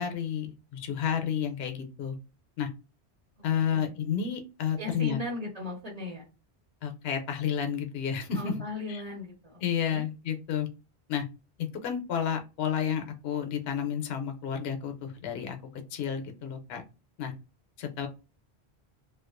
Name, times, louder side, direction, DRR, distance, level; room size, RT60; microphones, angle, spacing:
voice 1, 0.0-2.2 2.6-2.7 3.4-5.2 6.8-8.6 8.9-9.0 9.6-10.7 11.1-11.3 11.6-15.6 15.9-16.8 17.2-17.3 17.8-18.1, left 8 dB, 70° left, 5 dB, 0.8 m, -31 dB
voice 2, 4.8-6.2 8.3-10.0, left 2 dB, 35° right, -4 dB, 0.9 m, -37 dB
2.3 x 2.3 x 2.4 m, 0.29 s
omnidirectional pair, 1.1 m